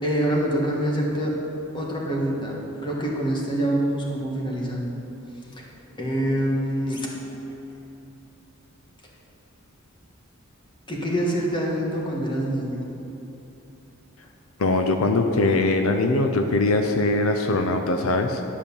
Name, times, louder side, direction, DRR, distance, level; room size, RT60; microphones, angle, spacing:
voice 1, 0.0-1.4 1.7-5.0 5.5-5.7 6.0-7.1 10.9-12.9, right 1 dB, 25° left, -2 dB, 1.4 m, -25 dB
voice 2, 14.6-18.4, left 2 dB, 75° left, 5 dB, 0.6 m, -21 dB
11.0 x 5.1 x 7.1 m, 2.9 s
head